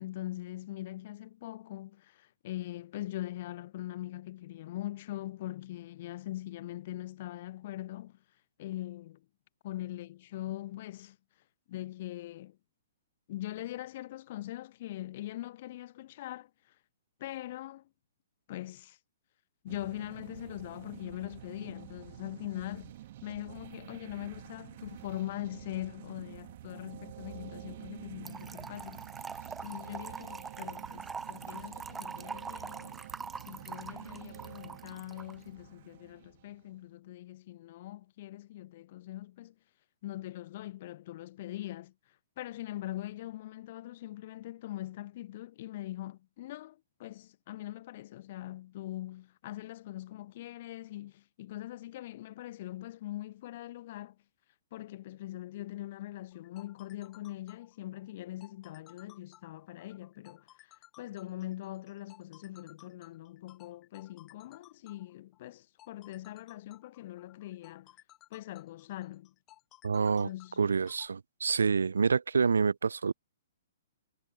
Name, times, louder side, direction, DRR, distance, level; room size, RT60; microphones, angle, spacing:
voice 1, 0.0-8.2 8.6-9.3 9.6-11.2 11.7-12.6 13.3-16.7 17.2-17.9 18.5-19.0 19.6-33.0 33.5-39.5 40.0-41.9 42.4-54.2 54.7-67.9 68.3-69.3 70.2-70.6, left 15 dB, 45° left, 0.4 m, -42 dB
sound 1, 19.7-36.8, right 14 dB, 45° right, 2.2 m, -49 dB
Trickle dribble / Fill (with liquid), 28.3-35.3, right 5 dB, 10° right, 0.7 m, -43 dB
sound 2, 56.3-71.1, left 16 dB, 25° left, 1.3 m, -58 dB
voice 2, 69.8-70.3 70.6-73.1, right 5 dB, 70° right, 0.4 m, -27 dB
figure-of-eight pair, 115°, 0 cm